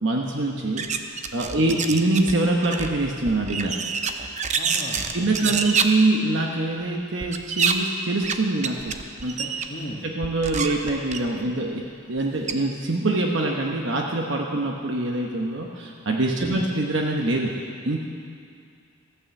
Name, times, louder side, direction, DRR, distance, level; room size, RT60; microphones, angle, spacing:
voice 1, 0.0-3.8 5.1-8.9 9.2-9.7 10.0-11.8 12.1-17.5 17.8-18.0, right 2 dB, 60° right, 0 dB, 1.0 m, -24 dB
sound 1, 0.8-2.3 2.6-5.8 7.2-7.7 8.2-8.4 8.6-9.7 10.2-11.5 12.2-12.3 12.5-12.6, right 6 dB, 35° right, 0.6 m, -27 dB
voice 2, 1.5-2.0 4.5-5.7 9.7-10.1 16.4-16.7, equal, 40° left, -4 dB, 1.3 m, -37 dB
14.5 x 9.4 x 7.0 m, 2.3 s
head